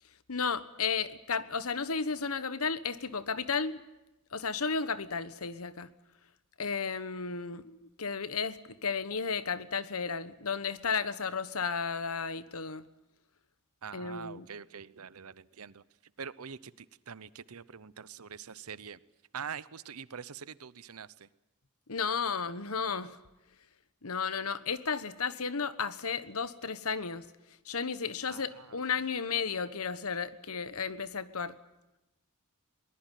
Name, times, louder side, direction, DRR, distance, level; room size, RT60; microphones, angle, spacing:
voice 1, 0.3-3.8 4.3-5.9 6.6-12.8 13.9-14.5 21.9-23.2 24.0-27.3 27.6-31.6, left 5 dB, 80° left, 14 dB, 1.3 m, -33 dB
voice 2, 13.8-15.8 16.2-19.0 19.3-21.3 28.3-28.8, right 6 dB, 85° right, 18 dB, 0.8 m, -44 dB
22.5 x 19.5 x 9.2 m, 0.97 s
head